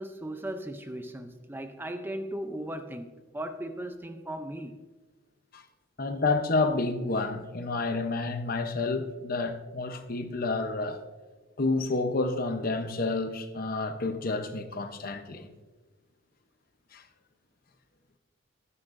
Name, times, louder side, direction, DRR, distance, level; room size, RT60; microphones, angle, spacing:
voice 1, 0.0-4.8, right 1 dB, 10° right, 0.5 m, -37 dB
voice 2, 6.0-11.0 11.6-15.5 16.9-17.0, left 3 dB, 45° left, 0.8 m, -29 dB
22.5 x 9.7 x 2.6 m
head